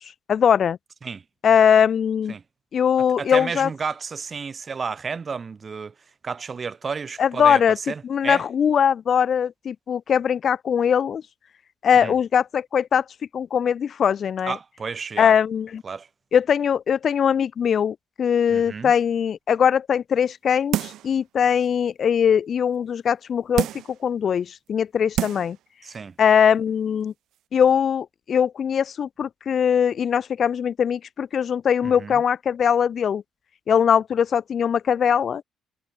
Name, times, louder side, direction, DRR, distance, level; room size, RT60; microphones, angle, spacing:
voice 1, 0.3-0.8 1.4-2.3 2.7-3.7 7.2-7.8 8.0-11.2 11.8-13.0 13.3-14.6 15.2-15.8 16.3-23.7 24.0-25.6 26.2-27.1 27.5-33.2 33.7-35.4, left 8 dB, 45° left, 0.9 m, -21 dB
voice 2, 3.2-5.9 6.2-8.4 11.9-12.2 14.5-15.4 15.8-16.1 18.5-18.9 25.8-26.1 31.8-32.2, right 5 dB, 30° right, 3.6 m, -32 dB
sound 1, 20.7-21.2 21.6-21.7 23.5-24.0 24.7-24.8 25.1-25.6 25.9-26.0, right 13 dB, 75° right, 0.7 m, -27 dB
cardioid pair, 120°, 0 cm